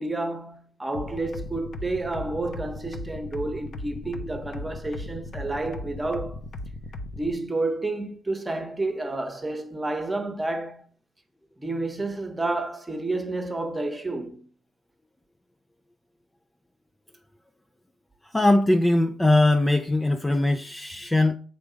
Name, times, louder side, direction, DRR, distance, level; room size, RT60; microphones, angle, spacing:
voice 1, 0.0-6.4 7.1-10.9 11.6-14.4, right 2 dB, 15° right, 1.0 m, -30 dB
sound 1, 0.9-7.3, left 2 dB, 60° left, 0.8 m, -37 dB
voice 2, 18.3-21.4, left 2 dB, 10° left, 0.4 m, -21 dB
7.6 x 3.5 x 5.1 m
cardioid pair, 100°, 0 cm